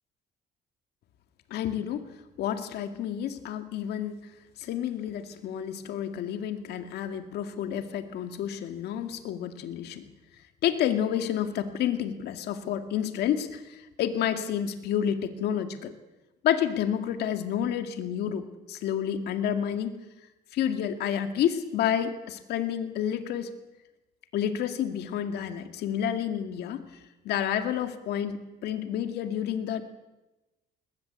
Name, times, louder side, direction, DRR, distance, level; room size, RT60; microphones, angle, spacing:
voice 1, 1.5-2.1 2.4-4.2 4.6-10.1 10.6-15.9 16.4-20.0 20.5-23.5 24.3-26.8 27.2-29.8, left 9 dB, 75° left, 8 dB, 2.1 m, -30 dB
21.0 x 20.0 x 8.3 m, 1.1 s
cardioid pair, 110°, 17 cm